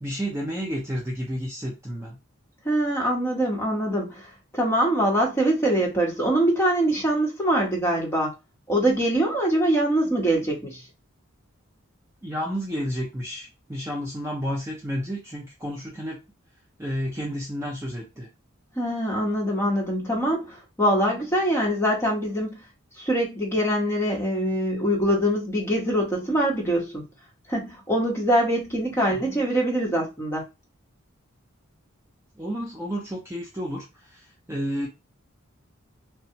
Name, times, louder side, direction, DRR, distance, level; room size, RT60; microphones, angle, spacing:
voice 1, 0.0-2.2 12.2-16.2 16.8-18.3 29.1-29.2 32.4-34.9, equal, 15° right, 0.4 m, -31 dB
voice 2, 2.6-8.3 8.7-10.8 18.8-22.6 23.0-27.0 27.5-30.4, right 1 dB, 10° left, 0.8 m, -23 dB
3.2 x 2.0 x 2.7 m
head